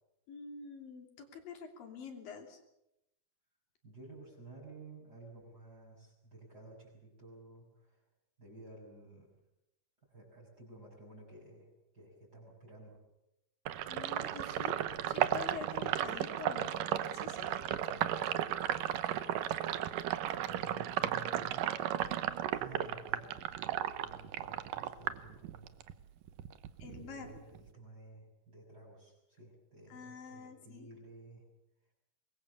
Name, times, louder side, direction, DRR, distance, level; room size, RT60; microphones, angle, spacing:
voice 1, 0.3-2.6 13.9-16.7 17.2-17.6 26.8-27.4 29.9-30.9, left 6 dB, 55° left, 3 dB, 4.4 m, -47 dB
voice 2, 3.8-8.0 8.4-9.3 10.1-11.7 11.9-13.0 16.5-16.9 20.4-21.8 22.5-23.4 24.0-25.7 27.0-31.5, right 2 dB, 20° right, -3 dB, 7.0 m, -53 dB
Sink (filling or washing), 13.7-25.9 26.3-27.7, right 11 dB, 80° right, 1.9 m, -34 dB
25.5 x 21.5 x 7.1 m, 0.87 s
omnidirectional pair, 5.2 m